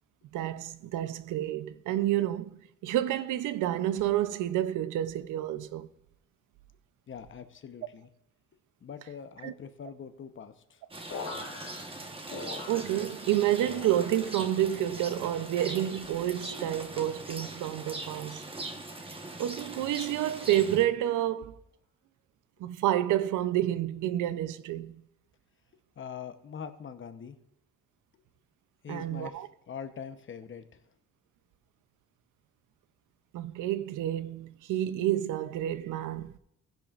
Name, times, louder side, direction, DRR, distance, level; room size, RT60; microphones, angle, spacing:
voice 1, 0.3-5.9 9.4-9.5 12.7-18.4 19.4-21.6 22.6-25.0 28.9-29.5 33.3-36.3, right 12 dB, 85° right, 0.6 m, -29 dB
voice 2, 7.1-8.1 8.8-10.8 26.0-27.4 28.8-30.8, left 7 dB, 40° left, 0.9 m, -43 dB
Rain, 10.9-20.8, right 2 dB, 20° right, 1.2 m, -41 dB
sound 1, 11.1-13.3 13.6-14.5 14.9-15.6 16.3-16.7 17.6-18.0 18.9-19.2, left 4 dB, 75° left, 2.6 m, -44 dB
15.0 x 10.5 x 2.5 m
cardioid pair, 90°, 30 cm